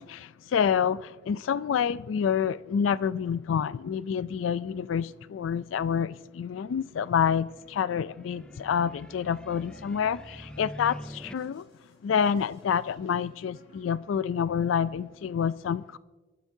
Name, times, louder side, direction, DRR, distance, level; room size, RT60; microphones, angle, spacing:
voice 1, 0.0-11.6 12.0-16.0, left 7 dB, 85° left, 0.3 m, -28 dB
sound 1, 6.4-11.3, equal, 5° left, 0.3 m, -46 dB
sound 2, 8.3-14.5, left 1 dB, 60° left, 4.4 m, -59 dB
24.0 x 12.5 x 2.7 m
head